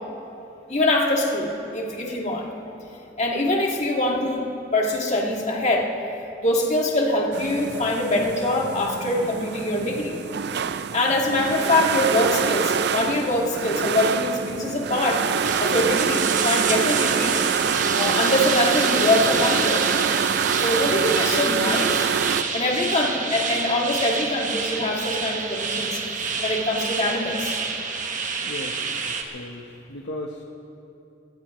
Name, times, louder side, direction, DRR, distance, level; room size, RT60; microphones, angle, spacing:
voice 1, 0.7-2.5 3.2-5.9 6.4-10.2 10.9-15.3 15.6-17.4 18.0-19.9 20.6-22.1 22.5-26.0 26.4-27.6, left 1 dB, 40° left, -1 dB, 1.9 m, -23 dB
sound 1, 7.3-22.4, right 7 dB, 60° right, 0.4 m, -25 dB
sound 2, 15.4-29.2, right 5 dB, 45° right, 1.2 m, -28 dB
voice 2, 28.4-28.9 29.3-30.4, left 1 dB, 70° left, 1 dB, 1.0 m, -36 dB
22.5 x 18.5 x 3.1 m, 2.8 s
head